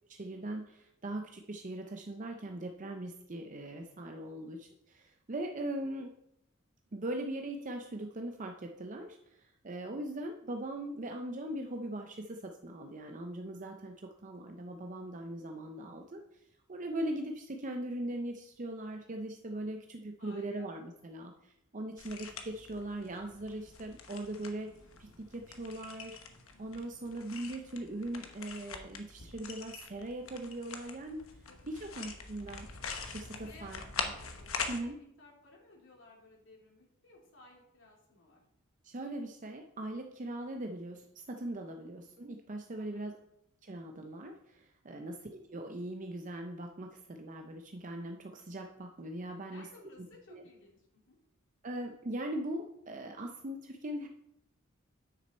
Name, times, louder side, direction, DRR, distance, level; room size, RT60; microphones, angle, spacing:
voice 1, 0.1-6.1 6.9-16.2 16.7-24.7 25.0-26.2 26.6-31.2 31.7-32.7 33.1-34.1 34.7-35.0 38.8-43.2 43.6-49.7 50.3-50.4 51.6-54.1, right 1 dB, 40° right, 4 dB, 0.7 m, -40 dB
voice 2, 20.2-20.7 31.5-32.1 32.4-32.7 33.4-38.4 41.7-42.0 42.8-43.1 45.0-45.3 49.5-51.2, left 2 dB, 65° left, -1 dB, 2.8 m, -58 dB
sound 1, 22.0-34.8, left 5 dB, 85° left, 1.1 m, -44 dB
9.4 x 6.5 x 4.3 m, 0.77 s
head